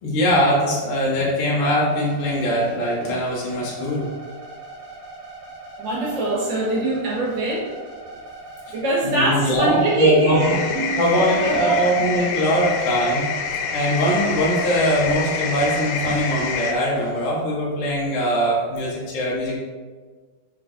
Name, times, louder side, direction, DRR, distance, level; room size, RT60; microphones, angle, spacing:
voice 1, 0.0-4.1 9.0-10.4 10.7-13.2 13.7-19.5, equal, 70° left, -6 dB, 3.3 m, -21 dB
sound 1, 1.9-17.3, right 2 dB, 50° right, 1.3 m, -40 dB
voice 2, 5.8-7.7 8.7-11.9, right 2 dB, 65° right, -5 dB, 1.7 m, -23 dB
sound 2, 10.4-16.7, left 6 dB, 90° left, 2.6 m, -27 dB
8.5 x 4.8 x 2.5 m, 1.5 s
omnidirectional pair, 4.5 m